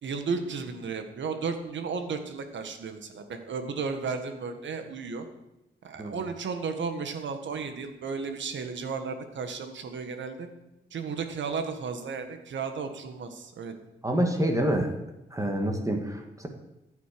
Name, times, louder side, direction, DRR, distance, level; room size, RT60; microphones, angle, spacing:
voice 1, 0.0-5.3 5.8-10.5 10.9-13.7, right 5 dB, 75° right, 7 dB, 1.7 m, -34 dB
voice 2, 14.0-14.9 15.3-16.5, right 1 dB, 15° right, 4 dB, 1.8 m, -27 dB
14.5 x 9.3 x 5.3 m, 0.94 s
cardioid pair, 110°, 19 cm